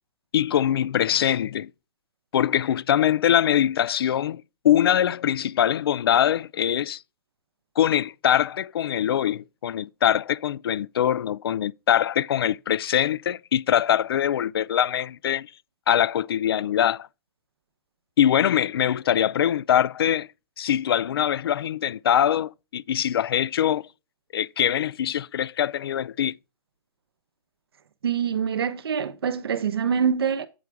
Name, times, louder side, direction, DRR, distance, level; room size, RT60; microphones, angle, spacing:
voice 1, 0.3-1.7 2.3-7.0 7.8-15.5 15.9-17.1 18.2-20.3 20.6-23.8 24.3-26.4, left 10 dB, 75° left, 0.4 m, -23 dB
voice 2, 28.0-30.5, right 7 dB, 85° right, 0.8 m, -25 dB
7.9 x 4.6 x 3.4 m
hypercardioid pair, 155°, 12 cm